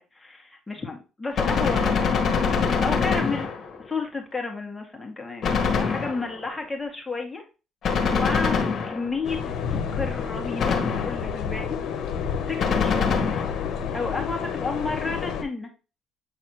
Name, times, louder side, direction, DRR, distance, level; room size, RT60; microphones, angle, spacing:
voice 1, 0.0-2.2 2.8-3.5 3.8-7.4 8.0-10.8 11.0-11.8 12.5-13.1 13.9-15.7, left 3 dB, 15° left, 2 dB, 2.0 m, -32 dB
Gunshot gunfire, 1.4-3.9 5.4-6.5 7.8-9.3 10.6-11.4 12.6-13.7, left 5 dB, 50° left, 1.7 m, -24 dB
sound 1, 9.2-15.4, left 7 dB, 70° left, 1.1 m, -30 dB
8.2 x 4.1 x 3.0 m, 0.31 s
cardioid pair, 95°, 0 cm